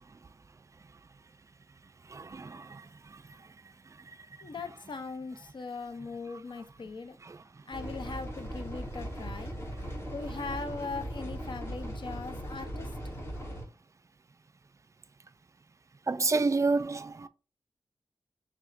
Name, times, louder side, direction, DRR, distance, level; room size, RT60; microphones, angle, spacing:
voice 1, 2.1-2.8 16.1-17.3, right 3 dB, 35° right, 0.3 m, -29 dB
voice 2, 4.4-7.2 7.7-9.5 10.1-12.9, left 4 dB, 65° left, 0.6 m, -40 dB
sound 1, 7.7-13.6, equal, 30° left, 1.3 m, -39 dB
4.9 x 3.5 x 2.5 m
wide cardioid pair, 95°, 9 cm